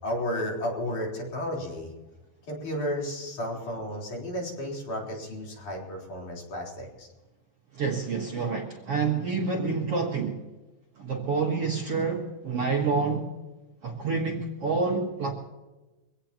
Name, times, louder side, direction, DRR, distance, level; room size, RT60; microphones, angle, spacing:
voice 1, 0.0-1.9 2.5-7.1, equal, 55° left, -2 dB, 5.3 m, -33 dB
voice 2, 7.7-10.4 11.0-13.3 13.8-15.3, right 4 dB, 50° right, 0 dB, 2.0 m, -28 dB
24.0 x 17.0 x 2.9 m, 1.1 s
omnidirectional pair, 4.4 m